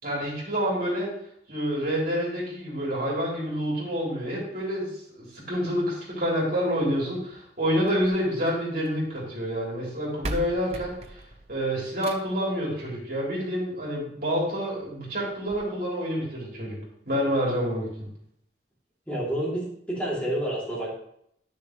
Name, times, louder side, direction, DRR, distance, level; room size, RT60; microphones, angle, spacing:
voice 1, 0.0-1.1 1.5-4.8 5.1-11.2 11.5-16.8 17.1-18.1, equal, 55° right, -5 dB, 3.6 m, -28 dB
sound 1, 7.8-9.1 9.9-10.0 10.2-12.5 13.8-13.9 14.4-14.5 14.8-14.9 15.5-15.6, right 1 dB, 35° right, 0.7 m, -38 dB
voice 2, 19.1-20.9, right 1 dB, 10° left, -8 dB, 2.7 m, -29 dB
11.0 x 6.7 x 3.1 m, 0.70 s
head